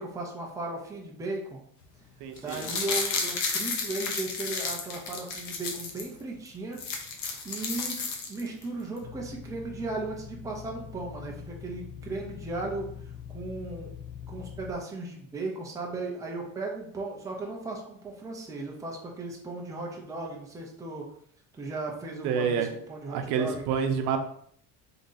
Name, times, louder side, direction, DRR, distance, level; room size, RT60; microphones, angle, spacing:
voice 1, 0.0-1.6 2.4-6.8 7.4-8.0 8.3-12.9 13.3-13.9 14.3-21.1 21.6-23.7, right 2 dB, 10° right, -2 dB, 0.6 m, -36 dB
voice 2, 2.2-2.7 22.2-22.7 23.1-24.2, right 6 dB, 75° right, 6 dB, 0.7 m, -28 dB
sound 1, 2.4-6.1 6.5-6.6 6.7-8.6 9.0-9.1, left 4 dB, 50° left, 0.9 m, -32 dB
sound 2, 9.0-14.7, left 8 dB, 80° left, 0.9 m, -43 dB
3.7 x 2.8 x 3.9 m, 0.63 s
cardioid pair, 165°, 37 cm